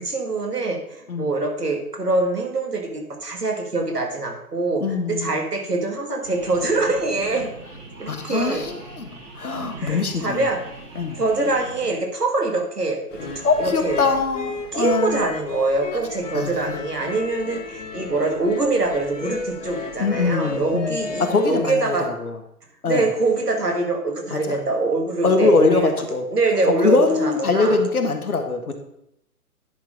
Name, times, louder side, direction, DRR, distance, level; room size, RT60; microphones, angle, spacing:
voice 1, 0.0-4.8 5.1-7.5 8.0-8.6 9.8-10.6 11.2-13.0 13.4-14.0 14.7-22.1 22.9-25.9 26.3-27.8, right 2 dB, 80° right, 2 dB, 2.0 m, -24 dB
voice 2, 4.8-5.3 8.1-10.5 10.9-11.2 13.4-15.2 16.3-16.8 20.0-21.0 21.3-22.4 22.8-23.1 24.3-24.6 25.2-26.2 26.8-28.7, left 3 dB, 65° left, 5 dB, 1.5 m, -22 dB
sound 1, 6.2-12.0, right 3 dB, 50° right, 3.8 m, -40 dB
sound 2, 13.1-21.6, left 3 dB, 50° left, 1.5 m, -33 dB
10.5 x 4.6 x 4.9 m, 0.80 s
figure-of-eight pair, 130°, 46 cm